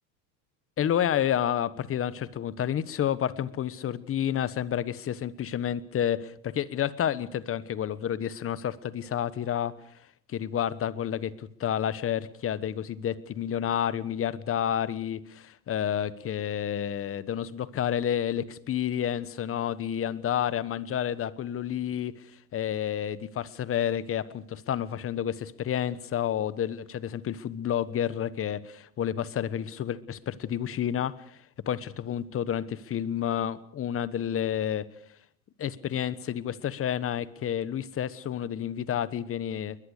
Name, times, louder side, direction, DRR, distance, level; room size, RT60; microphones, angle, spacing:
voice 1, 0.8-9.7 10.3-22.1 22.5-31.4 31.6-34.9 35.6-39.8, left 10 dB, 30° left, 17 dB, 1.3 m, -30 dB
22.0 x 21.0 x 6.6 m, 0.67 s
supercardioid pair, 110°, 44 cm